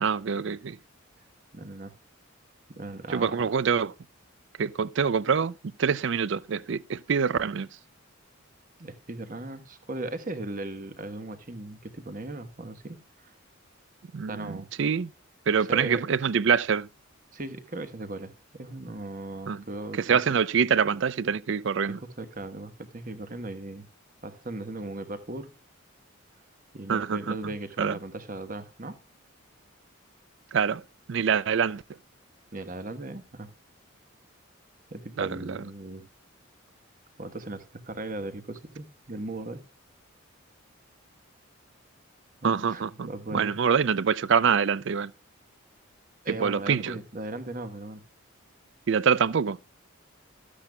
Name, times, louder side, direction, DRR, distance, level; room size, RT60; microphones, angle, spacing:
voice 1, 0.0-0.8 3.1-3.9 4.6-5.5 5.8-7.7 14.1-15.1 15.5-16.9 19.5-19.6 20.0-22.0 26.9-27.3 27.8-27.9 30.5-30.8 31.1-31.8 35.2-35.6 42.4-45.1 46.4-47.0 48.9-49.6, right 6 dB, 55° right, 0.4 m, -25 dB
voice 2, 1.5-1.9 2.7-3.5 8.8-13.3 14.3-14.7 15.6-16.0 17.3-20.2 21.9-23.9 24.2-25.5 26.7-29.0 32.5-33.5 34.9-36.1 37.2-39.6 42.4-43.6 46.2-48.0, right 2 dB, 40° right, 1.2 m, -38 dB
13.5 x 10.0 x 2.2 m
head